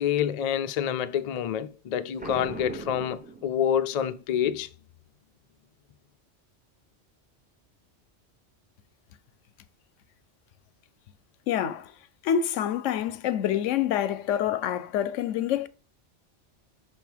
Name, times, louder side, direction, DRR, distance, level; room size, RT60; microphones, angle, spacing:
voice 1, 0.0-4.7, left 9 dB, 70° left, 0.3 m, -27 dB
Boom, 2.2-4.0, right 3 dB, 10° right, 0.4 m, -40 dB
voice 2, 11.5-11.9 12.2-15.7, left 9 dB, 90° left, 0.9 m, -27 dB
5.9 x 3.5 x 4.5 m
omnidirectional pair, 1.2 m